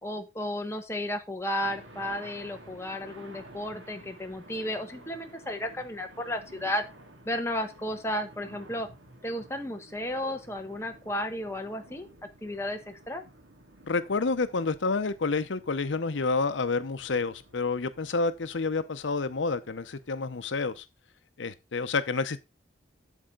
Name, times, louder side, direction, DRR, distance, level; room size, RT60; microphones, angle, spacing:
voice 1, 0.0-6.8 7.2-8.9 9.2-12.1 12.4-13.2, left 1 dB, 15° left, 1.2 m, -33 dB
sound 1, 1.6-20.8, right 1 dB, 85° right, 2.1 m, -53 dB
voice 2, 13.9-20.8 21.4-22.4, left 4 dB, 85° left, 0.7 m, -29 dB
8.4 x 7.5 x 3.8 m
head